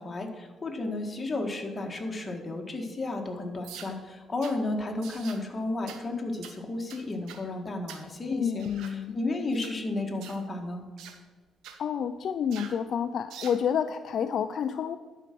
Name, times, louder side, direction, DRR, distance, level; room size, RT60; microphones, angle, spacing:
voice 1, 0.0-8.6 8.9-10.9, left 2 dB, 30° left, 2 dB, 1.6 m, -33 dB
sound 1, 3.6-3.9 4.4-4.6 5.0-5.4 5.9-6.0 6.4-6.6 6.9-7.4 7.9-8.1 8.6-9.0 9.5-9.8 10.2-10.4 11.0-11.2 11.6-11.8 12.5-12.8 13.3-13.6, right 8 dB, 85° right, 0.9 m, -45 dB
voice 2, 8.3-9.2 11.8-15.0, left 8 dB, 65° left, 9 dB, 0.4 m, -29 dB
11.5 x 4.7 x 6.0 m, 1.4 s
cardioid pair, 90°, 0 cm